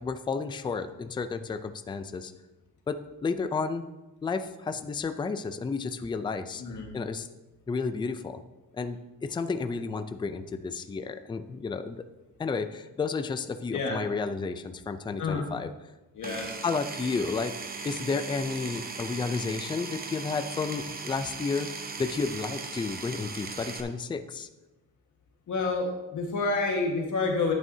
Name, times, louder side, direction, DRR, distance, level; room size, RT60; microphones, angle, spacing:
voice 1, 0.0-2.3 2.9-3.0 3.2-3.8 4.2-6.6 6.9-7.3 7.7-8.4 8.7-12.0 12.4-15.7 16.6-17.5 17.8-21.7 22.0-24.5, left 4 dB, 15° left, 9 dB, 0.4 m, -32 dB
voice 2, 16.1-16.5 25.5-27.5, left 3 dB, 55° left, 0 dB, 1.6 m, -28 dB
Power tool, 16.2-23.8, right 4 dB, 25° right, 0.9 m, -38 dB
11.0 x 9.1 x 2.8 m, 1.0 s
cardioid pair, 130°, 36 cm